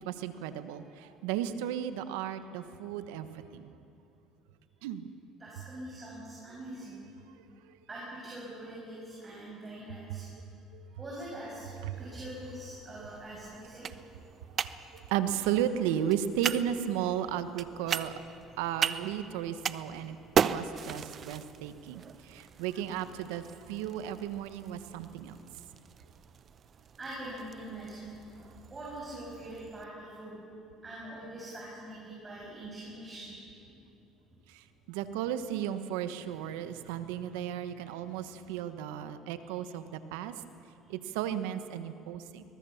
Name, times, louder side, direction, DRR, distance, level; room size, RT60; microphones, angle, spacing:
voice 1, 0.0-3.7 4.8-5.1 7.6-7.8 10.1-10.2 10.7-10.9 11.8-12.1 13.0-13.1 14.9-18.1 18.6-20.2 20.4-25.4 34.5-40.3 40.9-42.4, right 10 dB, 90° right, 11 dB, 1.2 m, -34 dB
voice 2, 5.4-7.0 7.9-10.3 11.0-11.7 12.0-13.9 27.0-28.2 28.7-30.4 30.8-33.3 33.7-33.8 39.4-39.5, right 1 dB, 25° right, -4 dB, 6.6 m, -43 dB
sound 1, 12.0-29.8, right 7 dB, 45° right, 0.7 m, -38 dB
22.5 x 20.0 x 7.2 m, 2.7 s
supercardioid pair, 95°, 0 cm